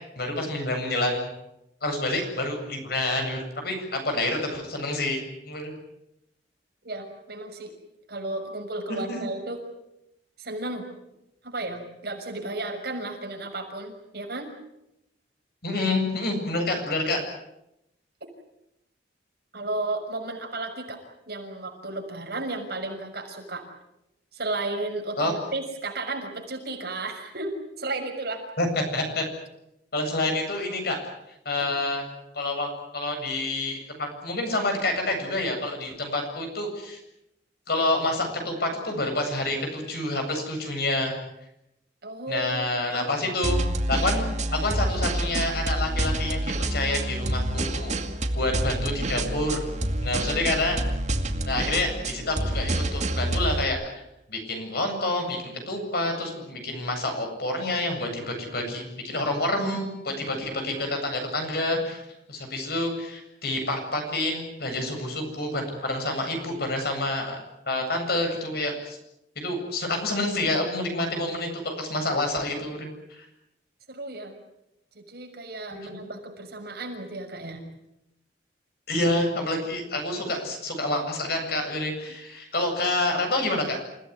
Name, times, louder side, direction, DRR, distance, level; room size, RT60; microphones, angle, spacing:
voice 1, 0.2-1.2 1.8-5.7 8.9-9.3 15.6-17.2 25.2-25.3 28.6-28.7 28.9-29.2 29.9-31.0 31.4-32.0 32.3-32.7 32.9-37.0 37.7-41.2 42.3-43.6 43.9-47.9 48.3-49.6 50.0-50.8 51.4-53.8 54.3-62.0 62.3-67.4 67.7-69.0 69.4-72.9 73.2-73.3 75.7-76.0 78.9-83.8, left 2 dB, 60° left, 4 dB, 7.9 m, -28 dB
voice 2, 6.8-7.7 8.1-9.6 10.4-10.8 11.4-14.5 19.5-21.0 21.3-23.6 24.3-28.4 31.6-31.7 42.0-43.3 60.1-60.2 73.9-74.4 74.9-77.7, right 2 dB, 55° right, 2 dB, 6.5 m, -33 dB
sound 1, 43.4-53.6, right 1 dB, 40° right, 2.3 m, -27 dB
29.0 x 17.5 x 9.9 m, 0.86 s
head